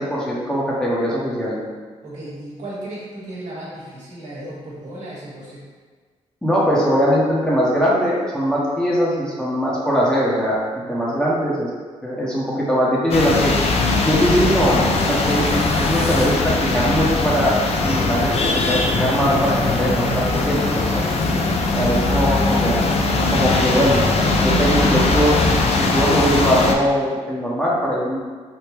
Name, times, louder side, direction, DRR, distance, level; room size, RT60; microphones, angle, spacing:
voice 1, 0.0-1.6 6.4-10.6 10.9-11.7 12.0-13.5 14.0-16.3 16.6-17.6 17.8-20.8 21.7-22.8 23.3-24.0 24.4-25.3 25.8-28.2, equal, 5° left, -7 dB, 1.0 m, -21 dB
voice 2, 2.0-5.6 21.4-21.6, right 1 dB, 70° right, -7 dB, 1.4 m, -35 dB
sound 1, 13.1-26.7, left 3 dB, 55° left, 0.5 m, -20 dB
3.5 x 2.7 x 3.0 m, 1.5 s
cardioid pair, 70°, 13 cm